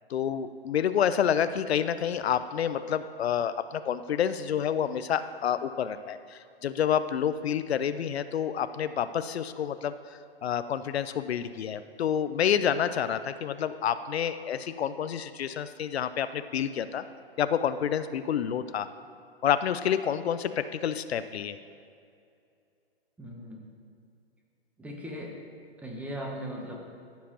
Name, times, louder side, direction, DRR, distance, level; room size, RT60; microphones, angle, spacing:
voice 1, 0.1-9.9 10.4-17.0 17.4-18.9 19.4-21.6, left 8 dB, 80° left, 12 dB, 0.5 m, -28 dB
voice 2, 23.2-23.6 24.8-25.4 25.8-26.8, equal, 5° right, 0 dB, 0.8 m, -38 dB
14.0 x 7.4 x 2.9 m, 2.5 s
hypercardioid pair, 140°, 31 cm